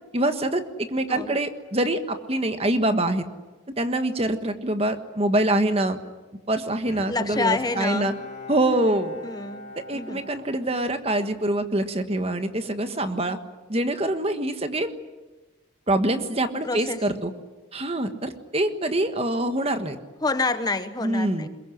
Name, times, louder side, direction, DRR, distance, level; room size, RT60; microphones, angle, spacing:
voice 1, 0.1-3.2 3.8-6.0 6.5-8.1 8.5-9.2 9.9-13.4 13.7-14.9 15.9-17.3 17.7-20.0 21.0-21.5, right 1 dB, 30° right, 8 dB, 1.5 m, -25 dB
Bowed string instrument, 6.9-11.4 11.8-11.9, left 3 dB, 40° left, 3.4 m, -41 dB
voice 2, 7.1-8.1 9.2-10.2 16.6-17.0 20.2-21.5, left 3 dB, 20° left, 10 dB, 1.0 m, -28 dB
22.5 x 21.5 x 10.0 m, 1.2 s
head